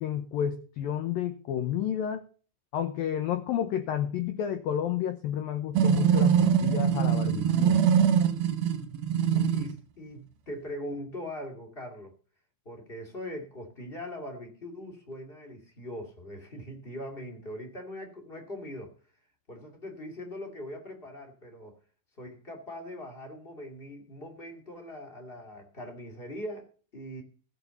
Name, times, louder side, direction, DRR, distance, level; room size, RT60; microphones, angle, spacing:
voice 1, 0.0-2.2 2.7-7.8, left 9 dB, 85° left, 2.0 m, -31 dB
sound 1, 5.7-9.7, right 8 dB, 70° right, 2.4 m, -23 dB
voice 2, 9.3-12.1 12.6-18.9 19.5-21.8 22.2-27.2, left 1 dB, 25° left, 1.3 m, -41 dB
16.0 x 6.6 x 7.0 m
omnidirectional pair, 5.4 m